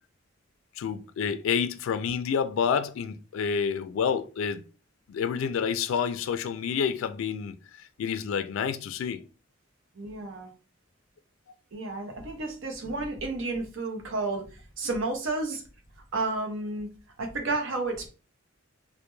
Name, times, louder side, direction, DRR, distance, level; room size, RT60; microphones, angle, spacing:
voice 1, 0.8-4.6 5.1-7.6 8.0-9.2, left 7 dB, 90° left, 0.3 m, -28 dB
voice 2, 10.0-10.5 11.7-15.6 16.1-16.9 17.2-18.1, right 3 dB, 75° right, 0.7 m, -31 dB
2.2 x 2.1 x 3.0 m
head